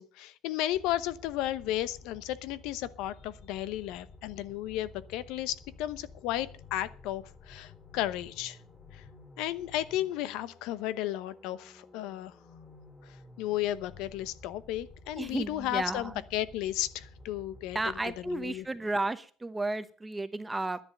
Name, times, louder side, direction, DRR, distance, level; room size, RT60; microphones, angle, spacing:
voice 1, 0.0-8.6 8.9-9.0 9.4-12.3 13.0-17.8 18.0-18.7, left 13 dB, 80° left, 16 dB, 0.8 m, -34 dB
sound 1, 0.7-18.8, left 3 dB, 20° left, 2.6 m, -53 dB
voice 2, 15.2-16.2 17.7-20.8, right 2 dB, 10° right, 12 dB, 0.8 m, -33 dB
11.0 x 10.5 x 6.6 m, 0.39 s
cardioid pair, 150°, 0 cm